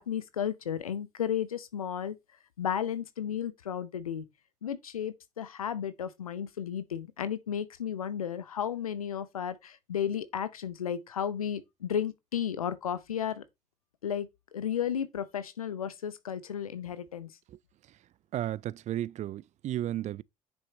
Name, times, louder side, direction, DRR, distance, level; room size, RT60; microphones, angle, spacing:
voice 1, 0.0-2.1 2.6-4.2 4.6-13.4 14.0-14.3 14.5-17.3, left 9 dB, 85° left, 0.7 m, -33 dB
voice 2, 18.3-20.2, right 12 dB, 40° right, 0.4 m, -34 dB
9.7 x 6.9 x 3.1 m
figure-of-eight pair, 50°, 18 cm